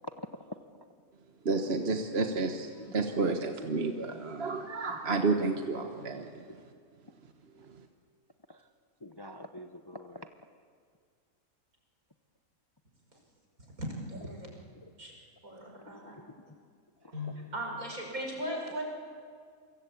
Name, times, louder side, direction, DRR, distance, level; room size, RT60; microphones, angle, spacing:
voice 1, 1.4-6.2, right 3 dB, 45° right, 5 dB, 1.4 m, -30 dB
voice 2, 9.0-10.3 15.9-16.5 17.0-17.3, left 1 dB, 20° left, 7 dB, 0.8 m, -47 dB
voice 3, 14.1-14.5 15.0-15.1 15.4-16.2 17.1-18.8, equal, 60° right, 1 dB, 5.9 m, -38 dB
28.0 x 24.5 x 8.6 m, 2.1 s
omnidirectional pair, 1.6 m